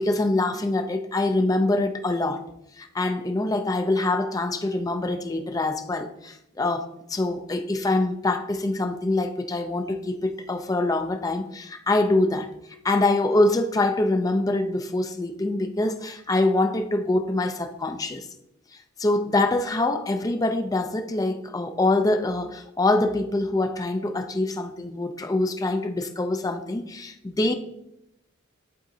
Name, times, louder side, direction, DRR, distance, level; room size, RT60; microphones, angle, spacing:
voice 1, 0.0-2.4 2.8-12.5 12.8-18.3 19.0-27.5, left 2 dB, 15° left, 0.4 m, -24 dB
11.0 x 3.8 x 2.7 m
head